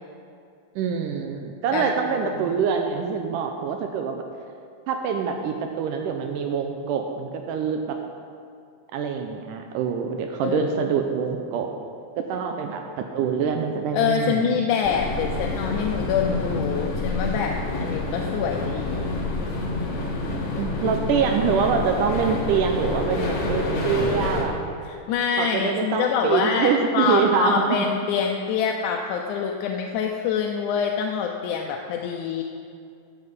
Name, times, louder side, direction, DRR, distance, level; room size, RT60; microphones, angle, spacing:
voice 1, 0.8-4.3 4.9-8.0 8.9-11.7 12.2-14.5 20.6-24.6 25.4-27.8, right 6 dB, 80° right, 4 dB, 2.3 m, -25 dB
voice 2, 1.7-2.6 10.4-10.7 13.9-19.1 20.8-21.3 24.9-32.4, left 6 dB, 75° left, 1 dB, 2.0 m, -26 dB
sound 1, 14.8-24.4, left 2 dB, 55° left, 2.4 m, -28 dB
14.0 x 8.1 x 5.4 m, 2.4 s
omnidirectional pair, 3.7 m